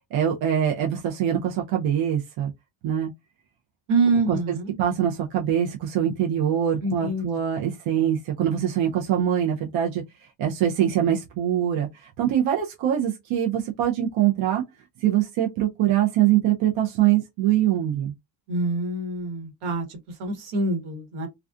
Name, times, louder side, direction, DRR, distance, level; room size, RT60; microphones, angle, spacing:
voice 1, 0.1-2.5 2.8-3.1 4.3-14.6 15.0-18.1, right 10 dB, 70° right, 0.6 m, -23 dB
voice 2, 3.9-4.8 6.8-7.4 18.5-21.3, right 2 dB, 85° right, 1.2 m, -26 dB
2.3 x 2.3 x 2.4 m
cardioid pair, 155°, 48 cm